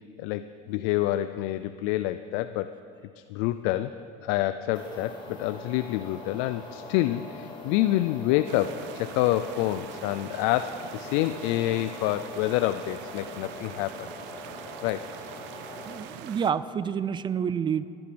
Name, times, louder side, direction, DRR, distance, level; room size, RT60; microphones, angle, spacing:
voice 1, 0.2-2.7 3.2-3.9 4.2-14.1 14.8-15.1, left 14 dB, 80° left, 12 dB, 0.5 m, -27 dB
sound 1, 4.7-16.0, left 3 dB, 25° left, 4.7 m, -43 dB
sound 2, 8.5-16.5, right 11 dB, 65° right, 0.7 m, -44 dB
voice 2, 15.9-17.9, right 7 dB, 25° right, 15 dB, 0.4 m, -28 dB
16.0 x 11.5 x 6.1 m, 2.5 s
cardioid pair, 135°, 19 cm